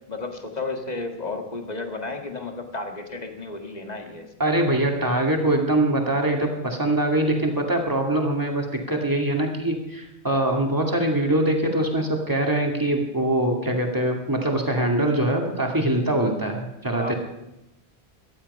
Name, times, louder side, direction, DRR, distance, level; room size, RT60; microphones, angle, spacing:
voice 1, 0.1-4.3 16.9-17.1, left 3 dB, 40° left, 4 dB, 1.9 m, -33 dB
voice 2, 4.4-17.1, right 1 dB, 20° right, 1 dB, 2.4 m, -23 dB
18.0 x 12.5 x 5.5 m, 0.93 s
omnidirectional pair, 1.1 m